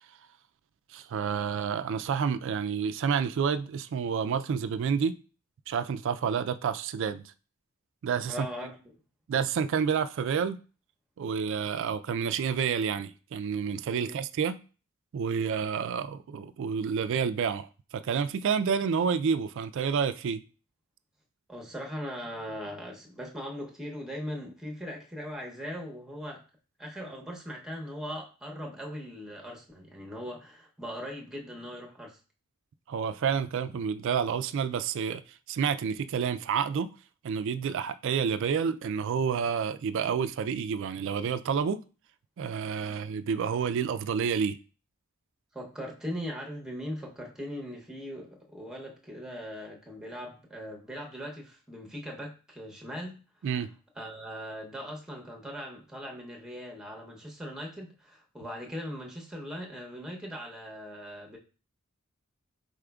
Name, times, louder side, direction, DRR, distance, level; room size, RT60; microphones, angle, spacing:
voice 1, 0.9-5.1 5.7-7.3 8.0-8.5 9.3-10.6 11.2-14.6 15.1-17.7 17.9-20.4 32.9-35.2 35.5-36.9 37.2-41.8 42.4-44.6 53.4-53.7, right 6 dB, 60° right, 0.3 m, -29 dB
voice 2, 8.3-8.9 14.0-14.2 21.5-26.4 26.8-32.2 42.8-43.1 45.5-53.2 54.0-61.4, equal, 5° right, 0.8 m, -40 dB
4.9 x 4.1 x 2.3 m
head